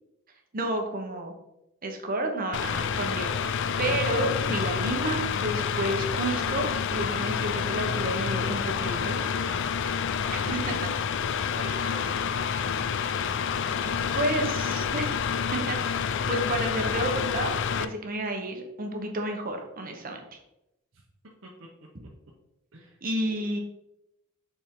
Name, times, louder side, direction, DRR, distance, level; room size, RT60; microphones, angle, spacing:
voice 1, 0.5-1.3 1.8-9.2 10.3-10.9 11.4-11.5 14.1-15.1 15.5-20.2 23.0-23.6, right 1 dB, 45° right, 3 dB, 1.1 m, -31 dB
Mechanical fan, 2.5-17.9, left 7 dB, 60° left, 0.4 m, -28 dB
voice 2, 9.2-9.5 11.3-12.5 13.8-14.2 21.4-21.5 22.7-23.0 23.3-23.6, right 2 dB, 65° right, -1 dB, 0.9 m, -45 dB
6.9 x 4.5 x 3.7 m, 0.88 s
head